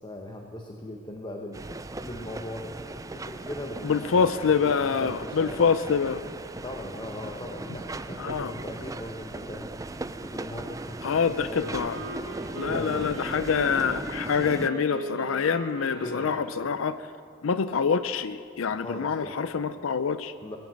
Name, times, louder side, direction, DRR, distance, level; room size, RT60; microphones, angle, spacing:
voice 1, 0.0-1.6 2.0-2.8 3.1-5.7 6.6-9.8 10.2-12.0 12.6-13.5 16.0-16.4 18.7-19.4 20.4-20.6, left 1 dB, 20° left, 1 dB, 1.0 m, -39 dB
sound 1, 1.5-14.7, right 2 dB, 15° right, 0.4 m, -38 dB
voice 2, 3.8-6.2 8.2-8.5 11.0-12.0 12.5-17.0 17.4-20.3, left 6 dB, 80° left, 13 dB, 0.5 m, -26 dB
Wind instrument woodwind instrument, 11.6-16.7, right 1 dB, 60° right, 3.0 m, -39 dB
20.0 x 9.2 x 7.6 m, 2.3 s
head